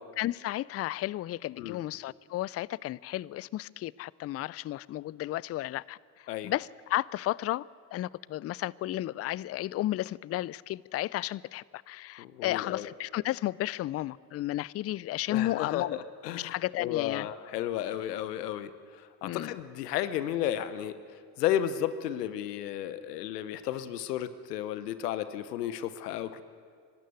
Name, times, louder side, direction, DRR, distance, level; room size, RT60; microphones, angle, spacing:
voice 1, 0.0-7.6 7.9-16.0 16.3-17.3 19.2-19.6, left 15 dB, 35° left, 0.4 m, -33 dB
voice 2, 12.2-12.9 15.3-18.7 19.0-21.0 21.4-26.4, left 11 dB, 85° left, 1.0 m, -33 dB
23.0 x 13.0 x 9.2 m
hypercardioid pair, 60°, 46 cm